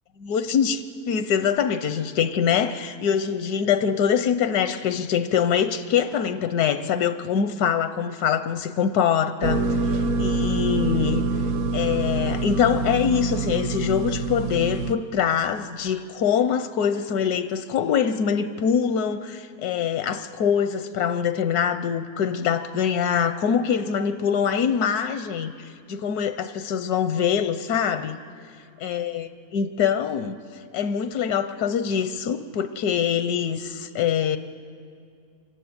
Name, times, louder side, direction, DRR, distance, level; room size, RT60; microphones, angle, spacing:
voice 1, 0.2-11.2 11.7-28.2 28.8-30.4 30.7-34.4, left 7 dB, 80° left, 11 dB, 1.2 m, -24 dB
sound 1, 9.4-14.9, right 3 dB, 60° right, 1.1 m, -25 dB
25.5 x 12.0 x 9.5 m, 2.3 s
omnidirectional pair, 1.6 m